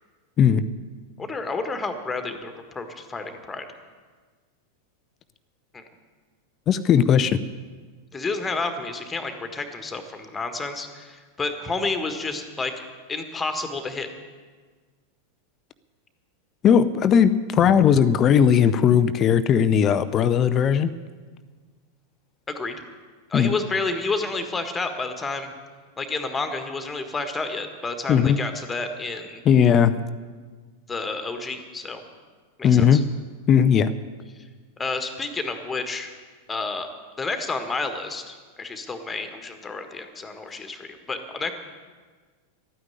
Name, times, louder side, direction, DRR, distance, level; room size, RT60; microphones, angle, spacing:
voice 1, 1.2-3.7 5.7-5.8 8.1-12.7 13.1-14.1 22.5-22.7 23.3-25.5 26.0-29.4 30.9-32.0 32.6-33.0 34.8-36.1 36.5-36.9 37.2-41.5, left 3 dB, 15° left, 7 dB, 1.5 m, -30 dB
voice 2, 6.7-7.4 16.6-20.9 23.3-23.5 28.1-28.4 29.5-30.0 32.6-33.0 33.5-33.9, left 8 dB, 30° left, 14 dB, 0.5 m, -18 dB
12.5 x 9.5 x 9.0 m, 1.5 s
figure-of-eight pair, 90°, 0 cm